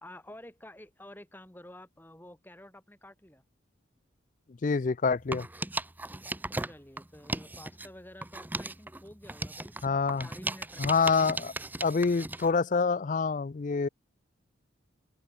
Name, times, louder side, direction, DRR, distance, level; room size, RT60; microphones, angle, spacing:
voice 1, 0.0-3.4 6.6-11.6, left 1 dB, 10° left, 1.7 m, -50 dB
voice 2, 4.6-5.5 9.8-10.3 10.8-11.5 11.8-13.9, left 4 dB, 40° left, 0.4 m, -26 dB
sound 1, 5.2-7.9 8.2-12.5, right 2 dB, 10° right, 0.7 m, -37 dB
open air
head